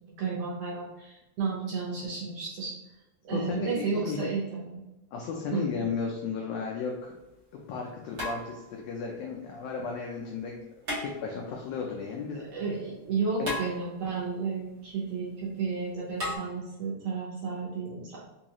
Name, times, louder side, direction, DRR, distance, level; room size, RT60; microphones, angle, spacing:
voice 1, 0.1-2.7 3.2-4.8 5.5-5.7 12.3-18.2, right 5 dB, 70° right, -5 dB, 1.6 m, -32 dB
voice 2, 3.3-4.2 5.1-7.1 7.5-10.7 11.0-12.4 13.4-13.6, left 5 dB, 85° left, 0 dB, 1.4 m, -34 dB
sound 1, 6.8-6.9 8.2-8.9 10.8-11.6 13.4-14.2 16.2-16.4, equal, 50° right, 1.3 m, -35 dB
4.6 x 2.4 x 2.8 m, 0.97 s
omnidirectional pair, 3.4 m